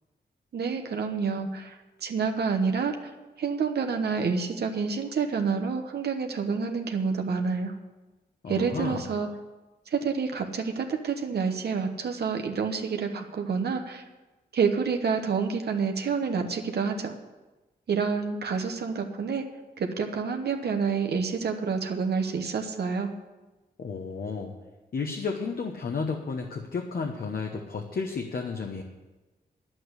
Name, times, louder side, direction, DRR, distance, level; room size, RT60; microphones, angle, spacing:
voice 1, 0.5-3.1 3.4-7.7 8.5-9.3 9.9-14.0 14.5-17.1 17.9-19.4 19.8-23.1, right 5 dB, 80° right, 5 dB, 1.1 m, -28 dB
voice 2, 8.4-9.1 23.8-24.5 24.9-28.8, left 4 dB, 65° left, 2 dB, 1.1 m, -32 dB
9.7 x 7.7 x 8.0 m, 1.1 s
cardioid pair, 75°, 17 cm